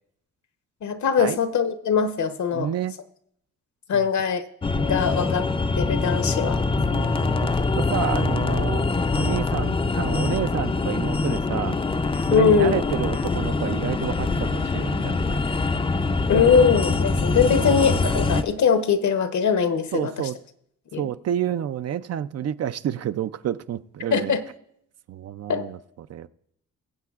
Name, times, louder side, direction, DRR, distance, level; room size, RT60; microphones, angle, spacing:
voice 1, 0.8-2.7 3.9-4.4 4.8-5.4 5.8-6.6 12.3-12.8 16.3-20.1 20.9-21.1 24.1-24.4 25.5-25.7, left 6 dB, 60° left, 0.9 m, -21 dB
voice 2, 2.5-3.0 3.9-4.1 6.9-11.8 12.3-15.4 17.5-17.7 19.9-20.4 21.0-24.4 25.1-26.3, right 10 dB, 50° right, 0.4 m, -29 dB
sound 1, 4.6-18.4, left 3 dB, 15° left, 0.5 m, -24 dB
22.5 x 7.6 x 2.4 m
cardioid pair, 90°, 32 cm